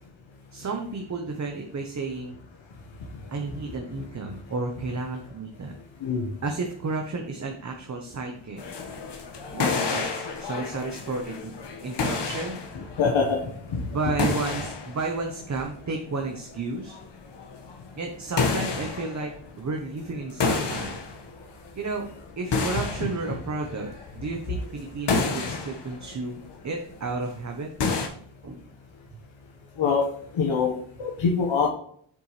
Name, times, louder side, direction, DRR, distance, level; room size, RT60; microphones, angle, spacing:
voice 1, 0.5-2.4 3.3-5.7 6.4-8.6 9.5-11.5 11.8-12.6 13.8-17.0 18.0-19.3 19.6-21.0 21.7-22.1 22.4-27.7 28.4-28.6, right 3 dB, 40° right, 3 dB, 1.0 m, -32 dB
sound 1, 8.6-18.1 18.4-19.8 20.2-21.5 21.8-27.3 27.8-28.1, left 4 dB, 65° left, 1.5 m, -30 dB
voice 2, 13.0-13.4 13.7-13.8 29.8-30.0 30.4-30.7 31.0-31.7, left 5 dB, 85° left, 0 dB, 1.4 m, -23 dB
8.4 x 6.9 x 3.2 m, 0.62 s
wide cardioid pair, 145°, 45 cm